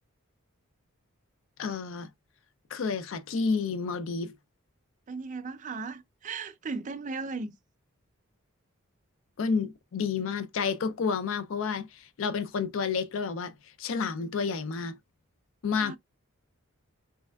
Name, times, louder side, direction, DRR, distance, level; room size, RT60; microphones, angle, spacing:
voice 1, 1.6-2.1 2.7-4.3 9.4-15.0 15.6-16.0, left 5 dB, 65° left, 0.4 m, -30 dB
voice 2, 5.1-7.5 15.7-16.0, right 4 dB, 35° right, 0.4 m, -36 dB
3.4 x 3.1 x 2.2 m
head